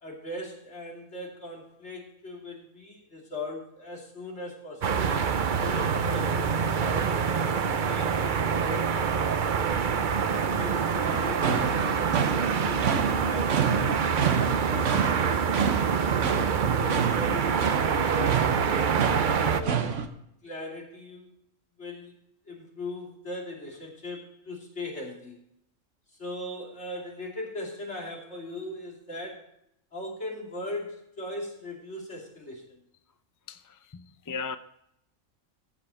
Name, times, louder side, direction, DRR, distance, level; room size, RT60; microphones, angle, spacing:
voice 1, 0.0-6.4 6.8-9.9 10.3-13.9 14.6-15.5 16.0-18.6 19.2-19.9 20.4-21.3 21.8-22.1 22.5-25.4 26.2-29.5 29.9-32.8, left 1 dB, 60° left, 3.2 m, -39 dB
sound 1, 4.8-19.6, right 6 dB, 50° right, 0.7 m, -26 dB
sound 2, 11.1-20.1, right 7 dB, 70° right, 1.3 m, -29 dB
voice 2, 33.5-34.6, left 5 dB, 30° left, 0.4 m, -37 dB
15.0 x 7.8 x 4.2 m
omnidirectional pair, 1.3 m